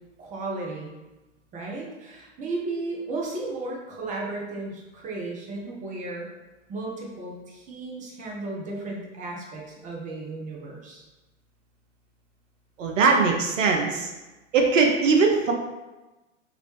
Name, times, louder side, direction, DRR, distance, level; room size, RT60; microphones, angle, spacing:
voice 1, 0.2-0.9 1.5-6.3 6.7-11.0, right 2 dB, 20° right, -2 dB, 0.7 m, -34 dB
voice 2, 12.8-14.1 14.5-15.5, right 4 dB, 75° right, 2 dB, 0.7 m, -20 dB
3.0 x 2.9 x 3.1 m, 1.1 s
hypercardioid pair, 110°, 38 cm